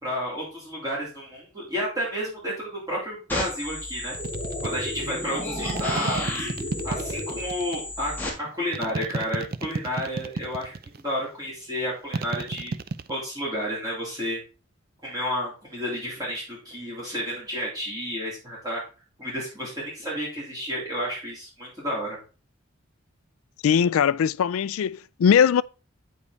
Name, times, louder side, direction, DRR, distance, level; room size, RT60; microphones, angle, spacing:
voice 1, 0.0-4.2 4.6-6.5 6.8-8.1 8.4-12.7 13.1-14.4 15.0-18.8 19.2-22.2, equal, 20° right, 3.4 m, -31 dB
sound 1, 3.3-8.3, left 1 dB, 10° left, 1.7 m, -32 dB
sound 2, 4.1-4.7 5.7-7.8 8.7-11.0 12.1-13.1, right 3 dB, 45° right, 0.4 m, -31 dB
voice 2, 23.6-25.6, left 7 dB, 80° left, 0.3 m, -20 dB
8.3 x 5.2 x 4.0 m
head